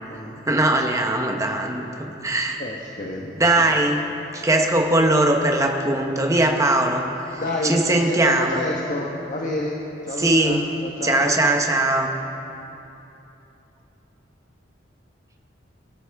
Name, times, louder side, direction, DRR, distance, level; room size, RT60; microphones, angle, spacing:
voice 1, 0.5-2.6 3.4-4.0 4.3-7.0 7.3-8.6 10.2-10.6 11.0-12.1, right 2 dB, 15° right, 2 dB, 1.0 m, -20 dB
voice 2, 2.6-3.4 3.7-3.8 7.4-11.3, left 1 dB, 45° left, -1 dB, 1.1 m, -29 dB
23.0 x 11.0 x 3.5 m, 3.0 s
head